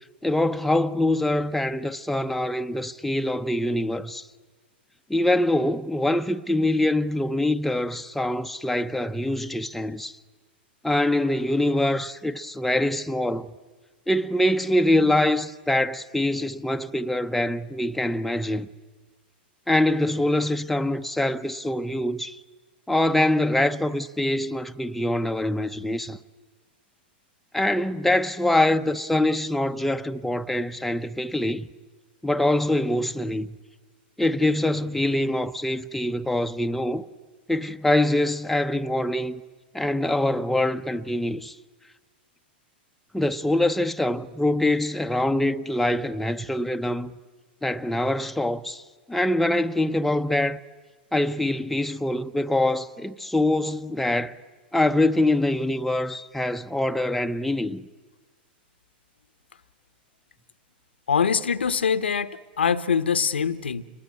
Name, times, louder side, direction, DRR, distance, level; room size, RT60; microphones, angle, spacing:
voice 1, 0.2-4.3 5.1-10.2 10.8-13.5 14.1-18.7 19.7-22.4 22.9-26.2 27.5-31.7 32.2-33.5 34.2-37.1 37.5-39.4 39.7-41.6 43.1-47.2 47.6-50.6 51.1-54.4 54.7-57.9, left 1 dB, 5° left, 0.8 m, -24 dB
voice 2, 61.1-63.8, left 6 dB, 90° left, 1.0 m, -23 dB
28.0 x 21.5 x 9.7 m
hypercardioid pair, 110°, 6 cm